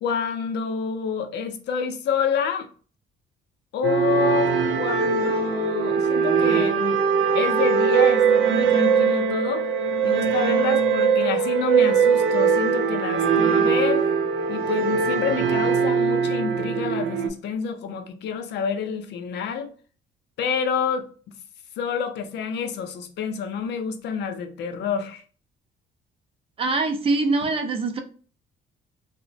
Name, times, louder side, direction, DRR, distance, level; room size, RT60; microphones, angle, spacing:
voice 1, 0.0-2.7 3.7-7.0 7.3-9.7 10.0-14.0 14.5-19.7 20.4-21.1 21.8-25.2, left 6 dB, 65° left, 0.5 m, -28 dB
sound 1, 3.8-17.3, right 6 dB, 80° right, 0.5 m, -21 dB
voice 2, 26.6-28.0, right 3 dB, 30° right, 0.4 m, -23 dB
2.9 x 2.1 x 2.6 m
cardioid pair, 155°, 19 cm